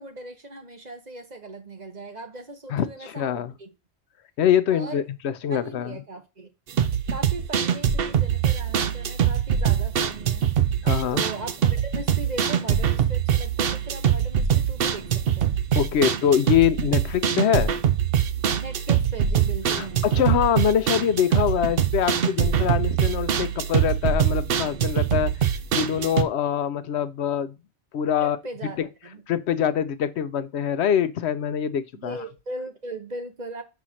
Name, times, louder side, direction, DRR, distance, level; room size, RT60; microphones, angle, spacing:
voice 1, 0.0-3.7 4.7-5.0 5.5-6.5 7.1-10.5 11.1-15.6 18.6-20.1 28.2-29.2 31.9-33.6, right 2 dB, 40° right, 1.1 m, -38 dB
voice 2, 2.7-3.5 4.4-6.0 10.8-11.2 15.8-17.7 19.7-27.5 27.9-28.4 28.8-28.9 29.3-32.2, left 9 dB, 70° left, 0.9 m, -24 dB
sound 1, 6.7-26.2, right 9 dB, 60° right, 0.8 m, -23 dB
5.8 x 4.2 x 6.2 m
omnidirectional pair, 1.2 m